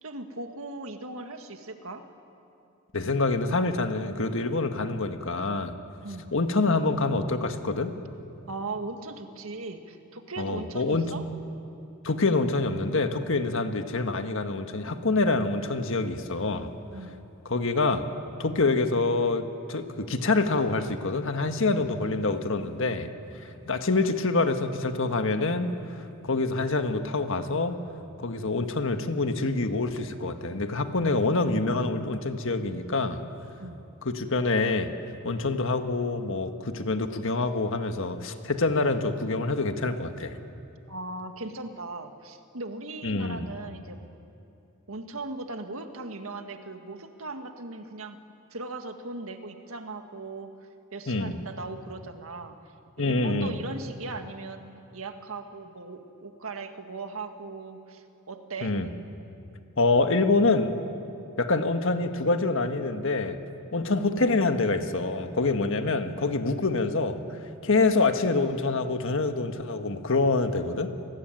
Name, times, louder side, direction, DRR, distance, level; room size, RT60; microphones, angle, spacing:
voice 1, 0.0-2.1 6.0-6.3 8.5-11.2 16.9-17.2 23.6-23.8 33.6-33.8 40.9-44.0 44.9-48.2 48.5-50.5 50.9-52.6 53.0-54.6 54.9-58.7, right 3 dB, 75° right, 6 dB, 1.9 m, -38 dB
voice 2, 2.9-5.7 6.3-7.9 10.4-11.1 12.0-16.7 17.4-18.0 18.4-23.1 23.4-25.7 26.2-27.8 28.2-33.2 34.0-34.9 35.2-40.3 43.0-43.5 51.1-51.4 53.0-53.6 58.6-58.9 59.8-60.8 61.4-63.4 63.7-67.2 67.6-70.9, left 3 dB, 65° left, 7 dB, 1.6 m, -26 dB
28.5 x 20.0 x 9.2 m, 2.6 s
head